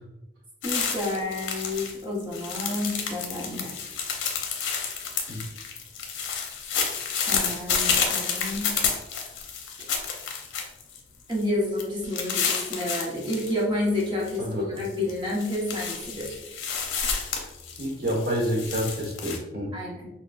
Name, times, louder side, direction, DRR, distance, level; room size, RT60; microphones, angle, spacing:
sound 1, 0.6-1.9 2.2-11.0 11.3-11.4 11.8-13.5 13.9-14.4 14.8-19.4, left 6 dB, 85° left, 0.7 m, -30 dB
voice 1, 0.6-3.7 7.3-8.7 11.3-16.4 19.7-20.1, left 1 dB, 25° right, -4 dB, 0.9 m, -30 dB
voice 2, 17.8-19.7, equal, 55° right, -2 dB, 1.1 m, -28 dB
5.8 x 2.2 x 2.4 m, 0.91 s
head